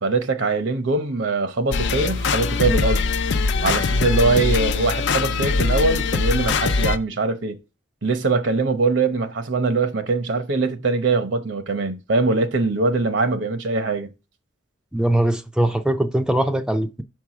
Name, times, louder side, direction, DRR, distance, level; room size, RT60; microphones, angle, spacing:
voice 1, 0.0-3.1 3.6-7.6 8.0-14.1, right 3 dB, 70° right, 0.9 m, -22 dB
sound 1, 1.7-7.0, left 4 dB, 65° left, 0.5 m, -22 dB
voice 2, 14.9-17.0, right 1 dB, 5° right, 0.4 m, -21 dB
6.1 x 4.7 x 5.9 m
head